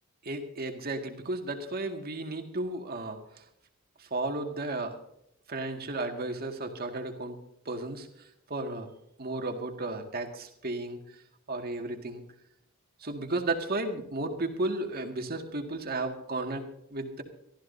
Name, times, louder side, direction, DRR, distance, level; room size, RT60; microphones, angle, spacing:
voice 1, 0.2-3.2 4.0-5.0 5.5-7.4 7.7-8.1 8.5-8.9 9.2-11.0 11.5-12.2 13.0-17.2, right 2 dB, 45° right, 4 dB, 2.0 m, -33 dB
23.5 x 14.0 x 2.8 m, 0.76 s
head